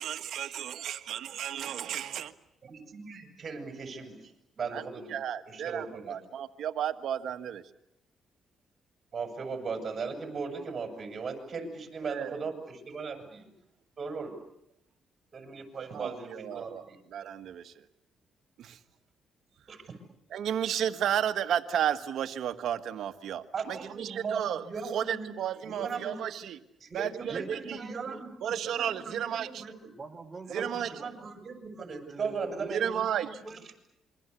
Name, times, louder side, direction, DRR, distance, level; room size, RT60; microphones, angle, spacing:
voice 1, 0.0-2.3 4.7-4.8 5.1-7.6 12.0-12.4 15.9-16.8 17.1-17.7 18.6-18.8 20.3-26.6 26.9-27.8 28.4-29.6 30.5-30.9 32.7-33.3, right 9 dB, 70° right, 10 dB, 1.6 m, -33 dB
voice 2, 2.6-4.3 4.6-5.1 5.5-6.2 9.1-13.5 14.0-14.3 15.3-17.0 19.7-19.9 23.5-25.3 25.6-26.2 26.8-28.3 28.6-29.9 30.5-33.0, right 5 dB, 45° right, 6 dB, 7.0 m, -38 dB
voice 3, 27.2-28.2 29.9-31.3 32.0-33.7, right 3 dB, 20° right, 5 dB, 4.3 m, -44 dB
27.0 x 24.0 x 8.4 m, 0.80 s
cardioid pair, 90°, 0 cm